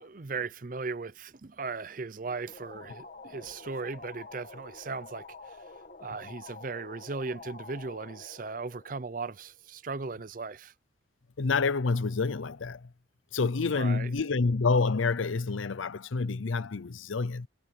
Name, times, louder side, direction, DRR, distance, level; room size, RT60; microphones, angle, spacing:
voice 1, 0.0-5.6 6.0-10.7 13.6-14.1, right 4 dB, 45° right, 0.6 m, -37 dB
sound 1, 2.3-9.7, left 3 dB, 45° left, 2.0 m, -48 dB
voice 2, 11.4-12.9 13.3-17.5, left 4 dB, 90° left, 0.7 m, -28 dB
head